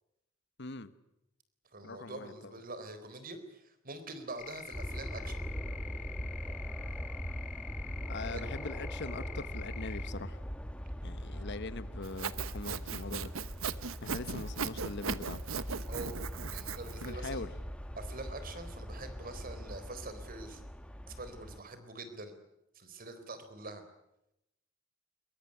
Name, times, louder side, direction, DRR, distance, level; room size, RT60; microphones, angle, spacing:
voice 1, 0.6-0.9 1.8-2.6 8.1-10.4 11.0-13.3 14.0-15.4 17.0-17.5, left 3 dB, 60° left, 1.3 m, -42 dB
voice 2, 1.7-5.4 8.3-8.4 15.9-16.2 16.5-17.4 18.0-20.6 21.1-22.4 22.7-23.8, right 2 dB, 45° right, 4.0 m, -44 dB
sound 1, 4.4-10.1, left 8 dB, 40° left, 1.3 m, -46 dB
sound 2, 4.7-21.6, equal, 5° left, 1.2 m, -41 dB
Sawing, 12.0-17.1, right 6 dB, 80° right, 1.0 m, -38 dB
22.0 x 22.0 x 9.9 m
head